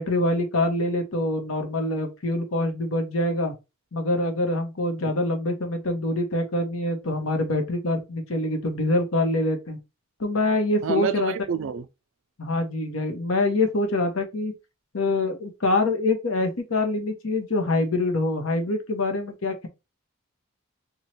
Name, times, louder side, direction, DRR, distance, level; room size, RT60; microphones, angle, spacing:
voice 1, 0.0-3.5 3.9-9.8 10.2-11.3 12.4-14.5 14.9-19.7, left 2 dB, 75° left, 0.9 m, -25 dB
voice 2, 10.8-11.9, right 7 dB, 65° right, 0.3 m, -27 dB
3.1 x 2.3 x 4.2 m
head